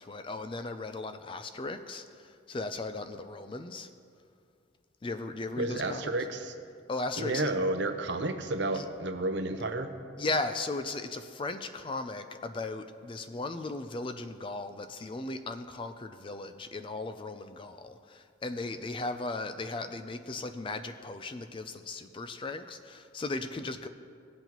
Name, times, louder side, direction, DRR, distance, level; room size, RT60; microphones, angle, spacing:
voice 1, 0.0-3.9 5.0-6.1 6.9-7.5 8.7-8.8 10.2-23.9, left 2 dB, 25° left, 9 dB, 0.4 m, -37 dB
voice 2, 5.6-6.5 7.2-9.9, right 2 dB, 60° right, 7 dB, 0.7 m, -31 dB
18.0 x 7.9 x 3.0 m, 2.3 s
head